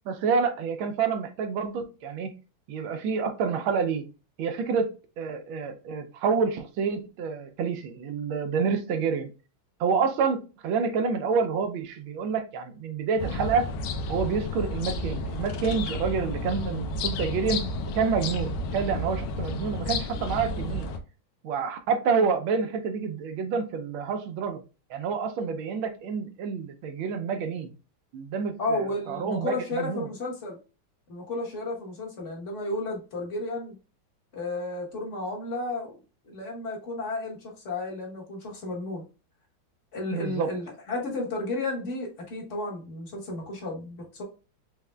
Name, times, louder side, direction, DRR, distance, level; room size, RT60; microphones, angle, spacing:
voice 1, 0.1-2.4 2.7-4.1 4.4-9.3 9.8-13.7 14.1-17.7 18.0-20.9 21.4-24.6 24.9-27.7 28.1-30.1 40.1-40.5, right 5 dB, 80° right, 7 dB, 1.4 m, -28 dB
sound 1, 13.2-21.0, left 2 dB, 80° left, 1.5 m, -31 dB
voice 2, 28.6-30.6 31.1-33.7 34.3-36.0 36.2-39.1 39.9-44.2, left 2 dB, 40° left, -1 dB, 1.4 m, -33 dB
5.4 x 3.5 x 2.2 m, 0.32 s
omnidirectional pair, 2.2 m